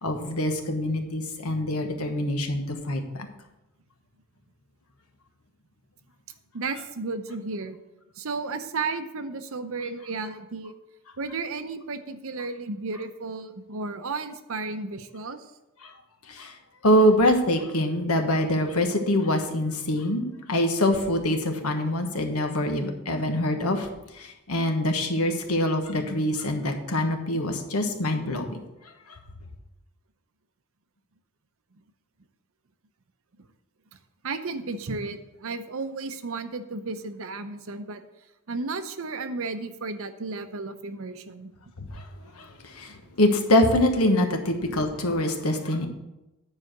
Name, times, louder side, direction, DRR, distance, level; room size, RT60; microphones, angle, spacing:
voice 1, 0.0-3.3 15.8-15.9 16.3-16.5 16.8-23.9 24.1-28.6 41.8-42.0 42.3-45.9, left 1 dB, 80° left, 5 dB, 1.3 m, -24 dB
voice 2, 6.5-7.8 8.2-10.7 11.2-15.5 34.2-38.0 38.5-41.5, right 3 dB, 65° right, 9 dB, 0.7 m, -33 dB
9.6 x 4.8 x 6.5 m, 0.97 s
head